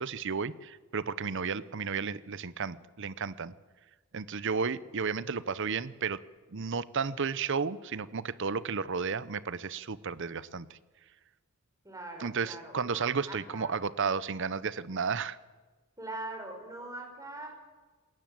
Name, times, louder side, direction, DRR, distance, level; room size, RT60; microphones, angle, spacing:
voice 1, 0.0-3.5 4.1-6.2 6.5-10.8 12.2-15.4, right 5 dB, 55° right, 17 dB, 0.7 m, -33 dB
voice 2, 11.8-13.7 16.0-17.5, right 2 dB, 15° right, 2 dB, 4.9 m, -42 dB
21.0 x 18.5 x 7.7 m, 1.3 s
head